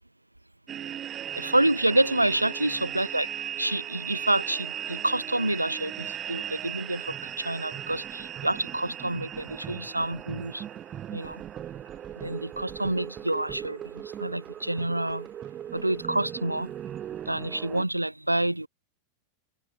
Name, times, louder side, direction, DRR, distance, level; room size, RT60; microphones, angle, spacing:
sound 1, 0.7-17.8, right 10 dB, 25° right, 1.3 m, -38 dB
voice 1, 1.3-3.3 3.6-10.6 11.1-11.4 12.2-15.3 15.7-16.7 17.3-18.7, right 1 dB, 85° right, 0.5 m, -28 dB
figure-of-eight pair, 90°, 0 cm